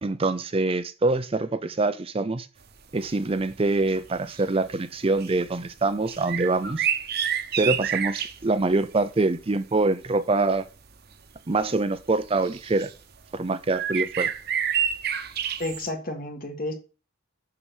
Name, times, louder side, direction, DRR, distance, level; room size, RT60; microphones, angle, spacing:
voice 1, 0.0-2.5 2.9-6.9 7.6-10.7 11.5-12.9 13.3-14.3, right 3 dB, 30° right, 0.5 m, -25 dB
sound 1, 3.0-3.1 3.5-3.7 4.1-4.7 5.2-5.4 6.1-8.4 10.6-10.7 11.6-11.7 12.3-12.9 13.7-15.9, right 8 dB, 50° right, 0.9 m, -28 dB
voice 2, 15.6-16.8, left 1 dB, 45° left, 1.9 m, -31 dB
7.2 x 6.9 x 6.2 m
head